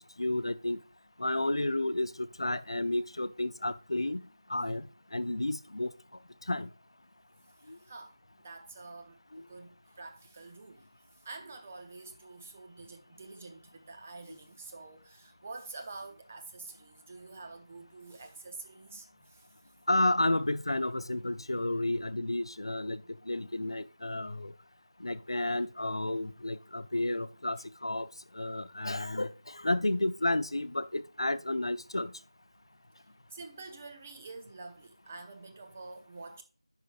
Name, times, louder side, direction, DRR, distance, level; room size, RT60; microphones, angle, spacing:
voice 1, 0.2-0.8 1.2-4.2 4.5-4.9 5.1-5.9 6.5-6.7 7.7-7.8 9.3-9.5 19.9-24.5 25.0-28.1 28.3-32.1, left 1 dB, 60° left, 0.6 m, -31 dB
voice 2, 7.6-10.9 11.2-19.5 33.3-36.4, right 3 dB, 20° right, 0.7 m, -47 dB
10.5 x 5.6 x 2.5 m
figure-of-eight pair, 170°, 3 cm